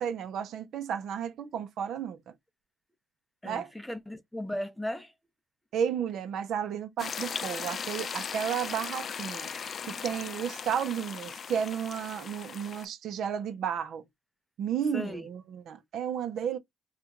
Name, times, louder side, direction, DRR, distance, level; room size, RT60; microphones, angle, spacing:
voice 1, 0.0-2.3 3.4-3.7 5.7-9.5 9.9-14.1 14.6-16.6, right 8 dB, 75° right, 0.6 m, -33 dB
voice 2, 3.4-5.1 9.5-9.6 14.9-15.3, left 1 dB, 5° left, 0.6 m, -36 dB
sound 1, 7.0-12.8, left 6 dB, 50° left, 0.3 m, -38 dB
3.0 x 2.4 x 3.5 m
cardioid pair, 90°, 0 cm